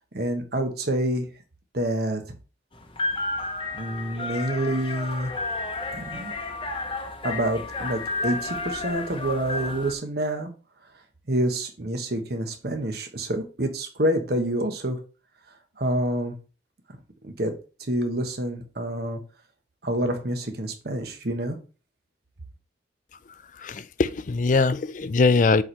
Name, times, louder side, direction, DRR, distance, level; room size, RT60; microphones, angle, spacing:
voice 1, 0.1-1.3 1.7-2.2 3.7-5.3 5.9-6.3 7.2-10.5 11.3-15.0 15.8-16.3 17.2-17.5 17.9-19.2 19.8-21.6, right 1 dB, 60° right, 1.2 m, -27 dB
sound 1, 2.7-9.9, left 3 dB, 30° left, 0.8 m, -32 dB
voice 2, 23.6-25.6, left 3 dB, 45° left, 0.4 m, -21 dB
7.5 x 4.3 x 3.3 m
head